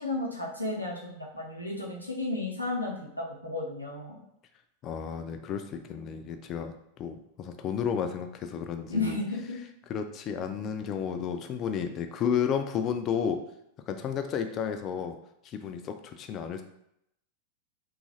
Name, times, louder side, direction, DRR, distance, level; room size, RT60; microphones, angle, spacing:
voice 1, 0.0-4.1 8.9-9.6, left 2 dB, 90° left, -3 dB, 0.7 m, -33 dB
voice 2, 4.8-9.2 9.9-13.4 13.9-15.1 15.4-16.6, left 7 dB, 35° left, 7 dB, 0.3 m, -32 dB
3.0 x 2.4 x 2.7 m, 0.79 s
figure-of-eight pair, 90°, 0 cm